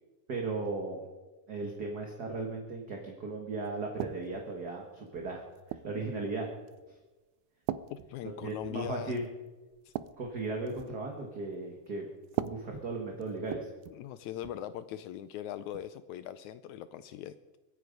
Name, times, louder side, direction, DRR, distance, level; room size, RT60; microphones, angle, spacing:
voice 1, 0.3-1.0 1.5-6.5 8.4-9.3 10.2-12.1 12.4-13.7, right 3 dB, 40° right, 1 dB, 1.6 m, -36 dB
sound 1, 4.0-4.5 5.2-6.0 6.7-6.9 7.7-8.9 9.2-9.3 9.7-11.0 12.2-14.1 14.4-14.6 15.7-15.9, right 12 dB, 80° right, 1.9 m, -40 dB
voice 2, 7.9-9.2 9.9-10.0 14.0-17.6, left 11 dB, 80° left, 13 dB, 1.8 m, -41 dB
23.5 x 9.2 x 5.2 m, 1.2 s
omnidirectional pair, 3.7 m